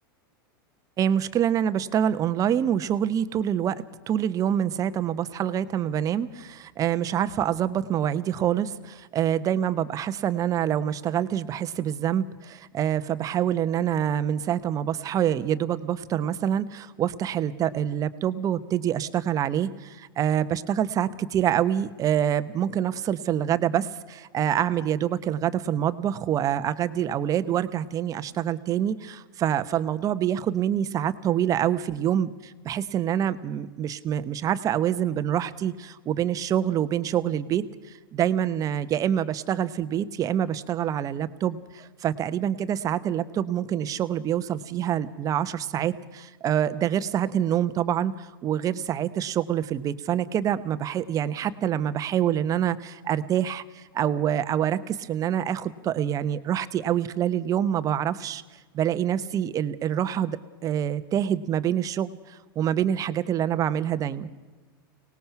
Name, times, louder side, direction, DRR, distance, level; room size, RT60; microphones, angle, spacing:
voice 1, 1.0-37.6 38.1-58.4 58.7-64.3, right 10 dB, 30° right, 12 dB, 1.0 m, -26 dB
24.0 x 19.0 x 5.9 m, 1.2 s
hypercardioid pair, 130°, 12 cm